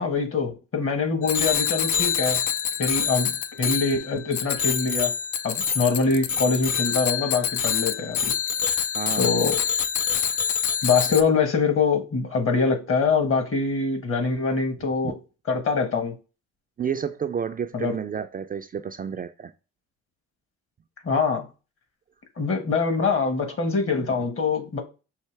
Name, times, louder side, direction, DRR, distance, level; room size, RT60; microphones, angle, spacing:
voice 1, 0.0-2.4 2.8-5.1 5.4-8.3 9.2-9.6 10.8-15.1 15.5-16.1 17.7-18.0 21.0-21.5 22.4-24.8, left 4 dB, 45° left, 1.3 m, -24 dB
Bicycle bell, 1.2-11.2, left 8 dB, 75° left, 0.6 m, -26 dB
voice 2, 9.0-9.3 15.0-15.1 16.8-19.5 23.5-23.6 24.0-24.3, right 7 dB, 30° right, 0.4 m, -31 dB
5.6 x 2.8 x 3.2 m
cardioid pair, 90°, 30 cm